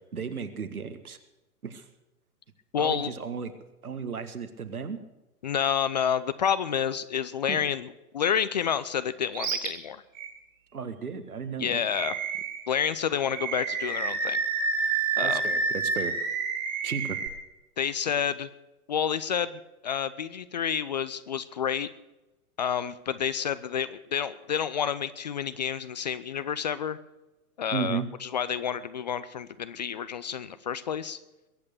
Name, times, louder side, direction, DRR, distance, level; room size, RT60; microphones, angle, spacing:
voice 1, 0.1-1.2 1.6-1.8 2.8-3.5 3.8-5.0 7.5-7.6 10.7-11.8 15.2-16.1 16.8-17.2 27.7-28.1, right 6 dB, 70° right, 9 dB, 1.7 m, -34 dB
voice 2, 2.7-3.1 5.4-10.0 11.6-12.2 12.7-14.4 15.2-15.4 17.8-18.5 18.9-21.9 22.6-27.0 27.6-31.2, left 8 dB, 30° left, 15 dB, 0.4 m, -29 dB
Animal, 9.3-9.7 10.1-10.3 11.9-12.6 13.3-17.3, right 5 dB, 55° right, 3.5 m, -29 dB
22.0 x 8.5 x 6.5 m, 1.0 s
figure-of-eight pair, 115°, 45 cm